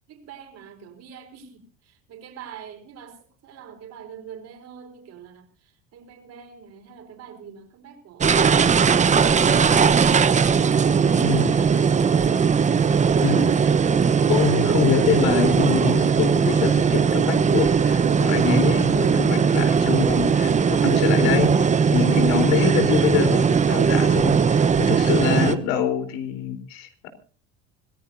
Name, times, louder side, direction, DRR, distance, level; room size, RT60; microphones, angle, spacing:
voice 1, 0.1-10.2, right 7 dB, 50° right, 4.9 m, -45 dB
sound 1, 8.2-25.6, right 6 dB, 20° right, 1.0 m, -19 dB
voice 2, 11.2-11.6 13.2-13.5 14.3-27.1, left 8 dB, 80° left, 4.0 m, -25 dB
25.5 x 16.0 x 2.7 m
cardioid pair, 130°, 33 cm